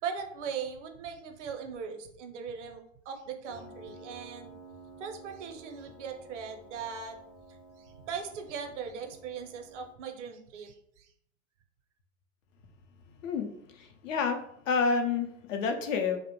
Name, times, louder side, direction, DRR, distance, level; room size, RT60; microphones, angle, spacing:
voice 1, 0.0-4.5 5.0-7.2 7.8-11.1, right 6 dB, 65° right, 5 dB, 0.6 m, -39 dB
Piano, 3.5-9.9, right 1 dB, 15° right, 0.4 m, -52 dB
voice 2, 13.2-16.2, left 5 dB, 75° left, 5 dB, 0.6 m, -29 dB
2.4 x 2.0 x 2.9 m, 0.71 s
hypercardioid pair, 115°, 39 cm